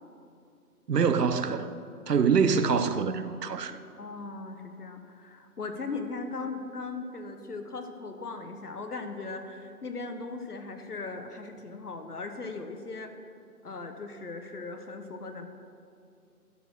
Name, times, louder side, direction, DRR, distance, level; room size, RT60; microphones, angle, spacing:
voice 1, 0.9-1.8 2.1-3.8, right 6 dB, 85° right, 0.7 m, -25 dB
voice 2, 4.0-13.1 13.6-15.5, left 3 dB, 75° left, 1.2 m, -38 dB
12.0 x 4.5 x 6.1 m
figure-of-eight pair, 165°, 46 cm